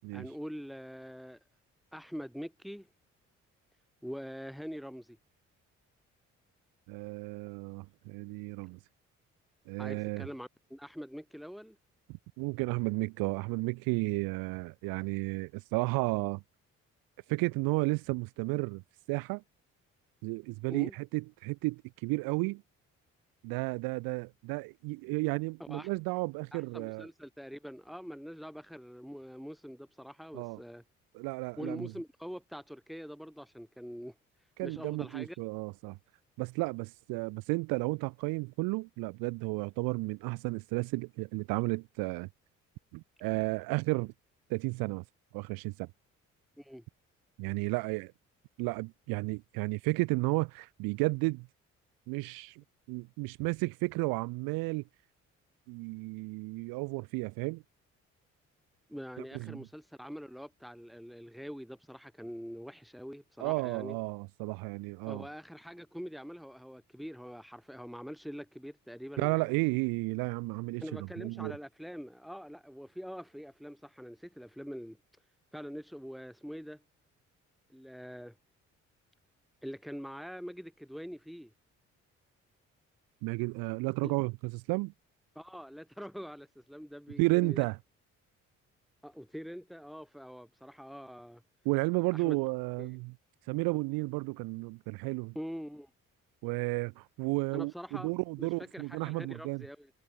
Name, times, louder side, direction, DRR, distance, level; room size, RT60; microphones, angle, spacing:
voice 1, 0.1-1.4 1.9-2.9 4.0-5.2 9.8-11.8 20.7-20.9 25.6-25.9 26.5-30.8 31.6-34.1 34.6-35.4 46.6-46.8 58.9-64.0 65.1-69.6 70.8-75.0 75.5-76.8 77.7-78.4 79.6-81.5 84.0-84.1 85.3-87.6 89.0-91.4 92.1-92.4 92.8-92.9 95.3-95.9 97.5-98.1 98.4-99.9, equal, ahead, 4.7 m, -44 dB
voice 2, 6.9-8.8 9.7-10.3 12.4-16.4 17.3-18.8 19.1-19.4 20.2-22.6 23.4-27.1 30.3-30.6 31.1-31.9 34.6-36.0 36.4-42.3 42.9-44.1 44.5-45.0 45.3-45.9 47.4-48.1 48.6-51.5 52.1-54.8 55.7-57.6 59.3-59.6 63.4-65.3 69.2-70.8 71.2-71.5 83.2-84.9 87.2-87.8 91.6-93.1 93.5-95.3 96.4-99.6, right 26 dB, 65° right, 0.5 m, -33 dB
hypercardioid pair, 45°, 38 cm